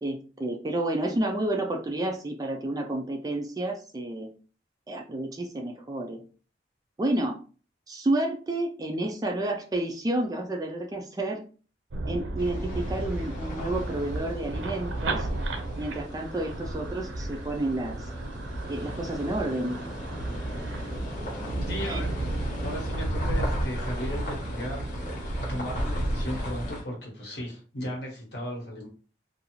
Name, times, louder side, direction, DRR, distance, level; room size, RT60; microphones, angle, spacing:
voice 1, 0.0-4.3 4.9-6.2 7.0-7.4 7.9-11.4 12.1-15.3 15.8-18.1 18.7-19.8 21.8-22.0, right 1 dB, 20° right, 3 dB, 0.3 m, -30 dB
sound 1, 11.9-26.7, right 1 dB, 85° right, 0.5 m, -33 dB
sound 2, 12.4-26.8, left 1 dB, 45° left, 0.8 m, -39 dB
voice 2, 21.6-28.9, equal, 65° left, -1 dB, 1.2 m, -36 dB
2.5 x 2.3 x 3.0 m, 0.38 s
head